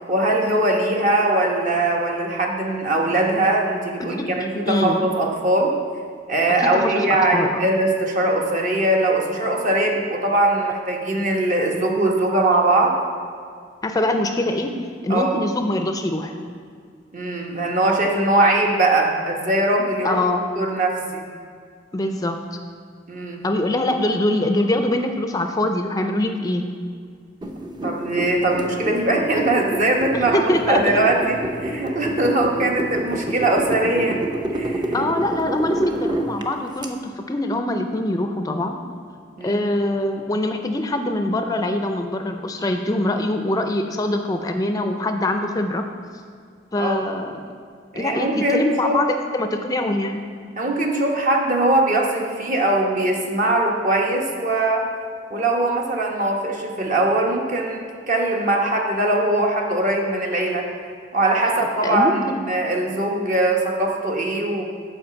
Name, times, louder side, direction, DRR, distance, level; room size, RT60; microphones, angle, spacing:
voice 1, 0.0-5.7 6.3-13.0 15.1-15.4 17.1-20.2 20.6-21.2 23.1-23.5 27.8-34.2 34.5-35.0 39.4-39.6 46.8-47.0 47.9-49.0 50.6-54.8 55.3-60.6 61.1-62.1 62.4-64.6, right 2 dB, 45° right, 0 dB, 1.1 m, -21 dB
voice 2, 4.7-5.1 6.6-6.9 7.3-7.6 13.8-14.7 15.0-16.3 20.0-20.4 21.9-22.6 23.4-26.6 30.1-31.0 34.9-38.8 39.4-45.8 46.7-47.4 48.0-49.1 49.3-50.2 61.8-62.4, left 1 dB, 20° left, 5 dB, 0.4 m, -23 dB
sound 1, 27.4-36.9, right 1 dB, 25° right, 0.6 m, -28 dB
7.8 x 4.9 x 6.9 m, 2.1 s
head